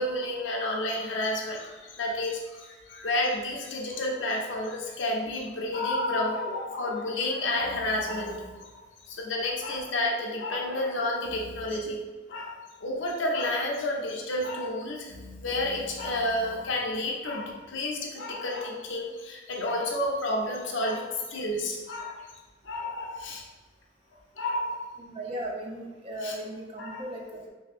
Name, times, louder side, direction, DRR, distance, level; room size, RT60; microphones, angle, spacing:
voice 1, 0.0-12.0 12.3-12.6 12.8-22.2 22.6-23.4 24.4-24.9 26.2-26.3 26.8-27.0, left 1 dB, 85° left, 0 dB, 0.6 m, -30 dB
voice 2, 25.0-27.5, right 1 dB, 30° right, -1 dB, 0.4 m, -37 dB
3.5 x 2.7 x 2.4 m, 1.3 s
head